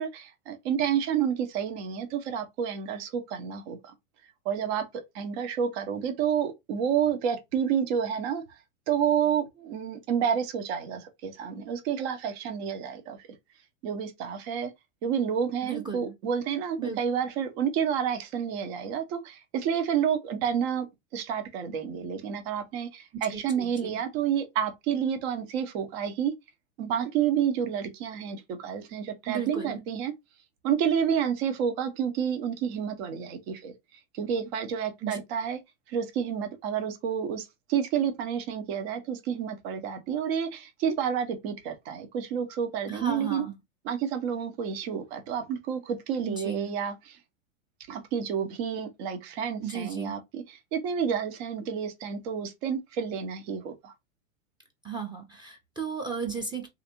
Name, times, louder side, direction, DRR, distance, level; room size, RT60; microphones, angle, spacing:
voice 1, 0.0-3.9 4.4-4.8 5.1-8.4 8.9-13.2 13.8-14.7 15.0-20.9 21.1-26.3 26.8-30.1 30.6-33.7 34.1-35.6 35.9-43.4 43.8-47.2 47.9-53.9, right 8 dB, 55° right, 0.9 m, -29 dB
voice 2, 15.6-16.1 16.8-17.0 23.3-24.0 29.3-29.8 35.0-35.2 42.9-43.6 46.2-46.7 49.6-50.2 54.8-56.7, right 6 dB, 10° right, 0.6 m, -35 dB
3.2 x 2.6 x 2.9 m
hypercardioid pair, 95°, 39 cm